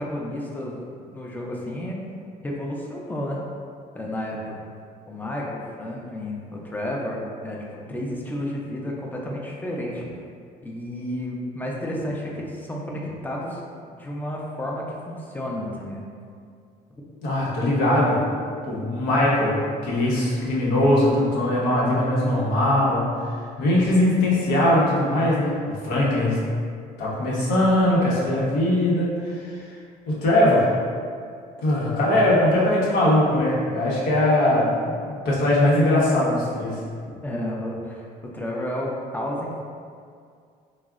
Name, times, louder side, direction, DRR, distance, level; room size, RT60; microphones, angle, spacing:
voice 1, 0.0-2.0 2.4-3.4 3.9-4.7 5.1-7.6 7.9-10.1 10.6-13.6 13.9-16.1 17.0-17.1 37.2-38.1 38.3-39.6, left 1 dB, 10° left, -2 dB, 0.4 m, -31 dB
voice 2, 17.2-18.2 18.6-23.2 23.6-26.4 27.0-29.6 30.1-30.7 31.6-36.8, left 1 dB, 85° left, -6 dB, 0.8 m, -21 dB
3.5 x 2.0 x 2.4 m, 2.2 s
cardioid pair, 110°, 17 cm